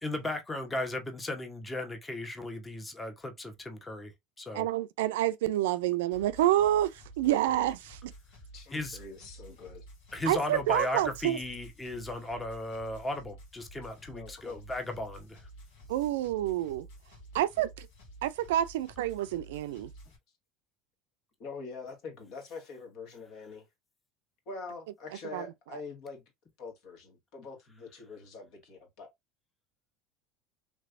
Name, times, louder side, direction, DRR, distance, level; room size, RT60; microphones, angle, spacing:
voice 1, 0.0-4.1 4.4-4.7 8.7-9.0 10.1-15.4, left 2 dB, 15° left, 1.0 m, -36 dB
voice 2, 4.5-8.1 10.3-11.4 15.9-16.9 17.4-17.7 18.2-19.9 25.3-25.4, right 13 dB, 80° right, 0.3 m, -28 dB
sound 1, 6.1-20.2, right 1 dB, 80° left, 1.8 m, -51 dB
voice 3, 8.5-9.8 14.1-14.6 21.4-23.6 24.5-26.2 26.6-29.1, left 4 dB, 60° left, 1.7 m, -44 dB
3.4 x 3.1 x 2.5 m
hypercardioid pair, 90°, 0 cm